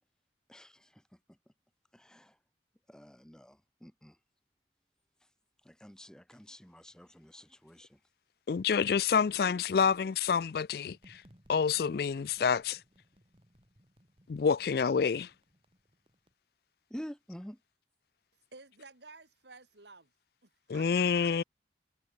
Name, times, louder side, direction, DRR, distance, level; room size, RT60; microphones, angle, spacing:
voice 1, 0.5-1.0 1.9-2.4 2.9-4.2 5.6-8.0 16.9-17.6, equal, 5° left, 0.7 m, -48 dB
voice 2, 8.5-11.2 11.5-12.8 14.3-15.3 20.7-21.4, left 6 dB, 55° left, 0.4 m, -28 dB
sound 1, 10.8-16.3, equal, 30° right, 4.1 m, -64 dB
voice 3, 18.5-20.1 20.4-21.4, right 3 dB, 70° right, 4.1 m, -53 dB
head